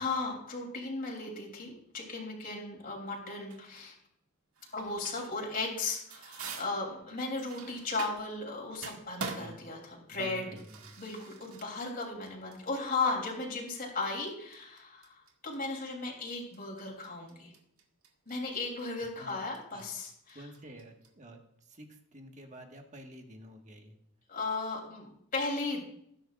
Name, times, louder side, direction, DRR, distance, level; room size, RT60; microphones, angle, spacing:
voice 1, 0.0-3.9 4.7-10.5 11.0-17.5 18.3-20.5 24.3-25.8, left 3 dB, 40° left, -1 dB, 3.3 m, -36 dB
sound 1, 3.5-3.9 4.6-5.5 5.8-8.4 8.7-21.1, right 4 dB, 85° right, 1.9 m, -46 dB
voice 2, 10.1-10.9 19.1-19.5 19.7-19.9 20.3-23.9, right 1 dB, 35° right, 3 dB, 1.6 m, -49 dB
19.0 x 10.0 x 2.5 m, 0.74 s
head